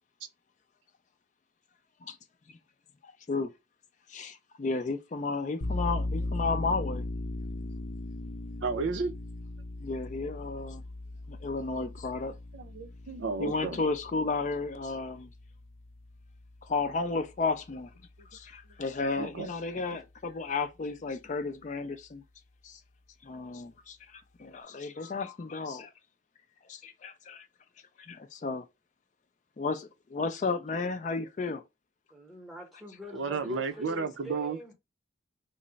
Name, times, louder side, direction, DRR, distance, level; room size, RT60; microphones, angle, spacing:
voice 1, 3.0-3.5 4.1-7.0 9.8-10.8 11.3-12.3 13.4-15.3 16.6-17.9 18.3-22.2 22.6-22.8 23.2-25.9 26.7-27.5 28.0-28.7 29.6-31.6, left 4 dB, 40° left, 0.3 m, -33 dB
sound 1, 5.6-16.9, left 2 dB, 85° left, 0.6 m, -38 dB
voice 2, 8.6-9.1 11.8-11.9 12.5-13.8 19.2-19.5 19.7-19.8 33.1-34.6, right 4 dB, 75° right, 0.5 m, -33 dB
voice 3, 32.1-34.7, equal, ahead, 0.8 m, -45 dB
3.2 x 2.0 x 3.8 m
head